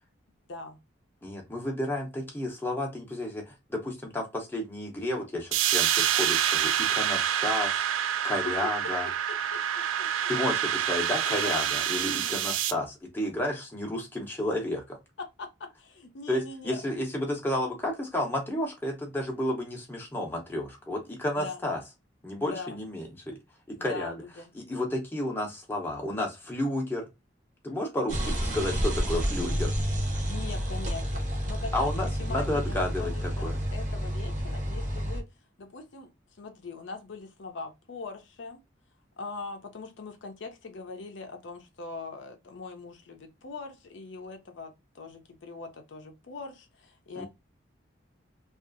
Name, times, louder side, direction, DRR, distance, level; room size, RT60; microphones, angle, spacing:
voice 1, 1.2-7.9 8.2-9.1 10.3-12.9 13.1-15.0 16.3-21.8 22.2-23.4 23.7-24.1 24.7-27.0 27.6-29.7 31.7-33.6 47.1-47.3, left 1 dB, 10° left, 0.6 m, -31 dB
sound 1, 5.5-12.7, right 10 dB, 85° right, 0.3 m, -27 dB
voice 2, 9.3-10.1 11.3-11.6 12.2-12.5 15.2-16.8 21.4-21.6 22.5-22.8 23.8-24.5 30.3-31.9 32.2-35.3 35.6-36.1 36.4-38.6 39.2-47.3, left 4 dB, 65° left, 0.5 m, -41 dB
sound 2, 28.1-35.2, equal, 40° right, 0.7 m, -30 dB
2.6 x 2.4 x 2.5 m
head